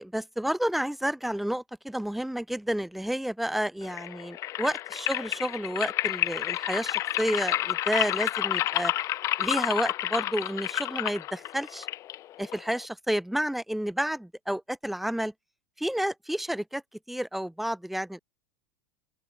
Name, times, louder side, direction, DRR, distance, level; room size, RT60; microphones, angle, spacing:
voice 1, 0.0-8.9 9.4-11.9 12.4-15.3 15.8-16.8 17.1-18.2, equal, ahead, 0.5 m, -30 dB
sound 1, 3.8-12.9, left 14 dB, 35° left, 1.2 m, -30 dB
open air
figure-of-eight pair, 80°, 9 cm